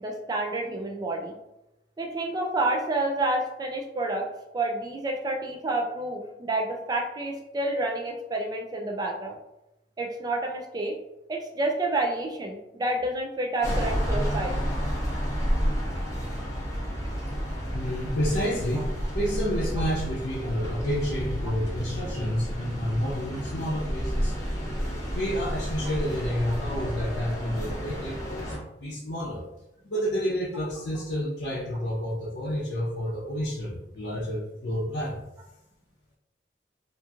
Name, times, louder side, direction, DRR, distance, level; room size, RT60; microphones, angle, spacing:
voice 1, 0.0-1.3 2.0-4.3 4.5-9.4 10.0-11.0 11.3-14.6, right 2 dB, 20° right, 1 dB, 0.3 m, -29 dB
sound 1, 13.6-28.6, equal, 20° left, 0.7 m, -30 dB
voice 2, 17.7-24.3 25.1-29.4 29.8-35.2, equal, 70° left, -7 dB, 0.6 m, -30 dB
2.9 x 2.5 x 2.4 m, 0.91 s
head